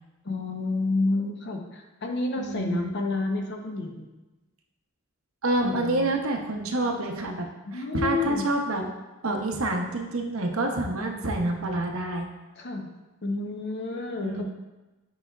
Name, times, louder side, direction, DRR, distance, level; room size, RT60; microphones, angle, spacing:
voice 1, 0.2-4.1 5.6-6.1 7.7-8.4 12.6-12.9 13.2-14.4, left 3 dB, 55° left, 3 dB, 0.7 m, -29 dB
voice 2, 2.4-2.9 5.4-8.9 9.2-12.3 14.2-14.4, right 2 dB, 80° right, 3 dB, 0.8 m, -28 dB
8.2 x 4.8 x 2.3 m, 1.1 s
head